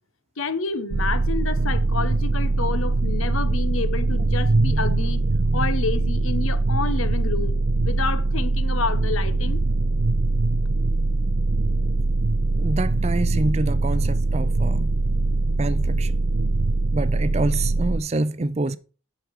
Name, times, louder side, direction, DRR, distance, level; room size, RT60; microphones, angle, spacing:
voice 1, 0.4-5.3 5.5-7.6 7.8-9.6, left 4 dB, 90° left, 0.9 m, -29 dB
sound 1, 0.9-18.0, right 2 dB, 80° right, 0.6 m, -22 dB
voice 2, 12.6-14.9 15.6-16.2 16.9-18.8, right 2 dB, 30° right, 0.5 m, -26 dB
11.0 x 5.1 x 4.7 m
head